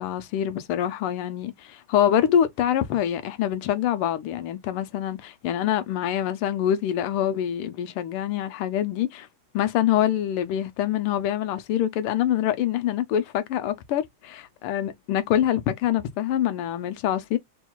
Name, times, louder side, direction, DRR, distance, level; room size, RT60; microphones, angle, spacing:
voice 1, 0.0-9.3 9.5-17.4, left 10 dB, 85° left, 1.6 m, -25 dB
3.9 x 2.3 x 4.3 m
omnidirectional pair, 2.4 m